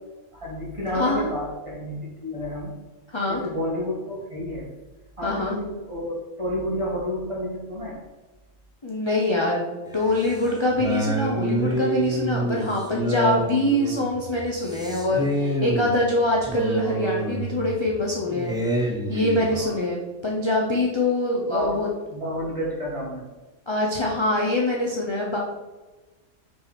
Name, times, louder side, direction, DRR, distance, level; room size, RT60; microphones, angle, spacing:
voice 1, 0.3-2.7 3.3-4.7 5.2-7.9 19.5-19.8 21.5-21.8 22.1-23.3, left 1 dB, 25° right, -5 dB, 2.2 m, -30 dB
voice 2, 0.9-1.3 3.1-3.4 5.2-5.6 8.8-21.9 23.7-25.4, left 1 dB, 25° left, -2 dB, 0.8 m, -24 dB
sound 1, 9.9-19.5, right 1 dB, 5° right, 0.4 m, -28 dB
5.9 x 4.8 x 4.4 m, 1.2 s
omnidirectional pair, 1.3 m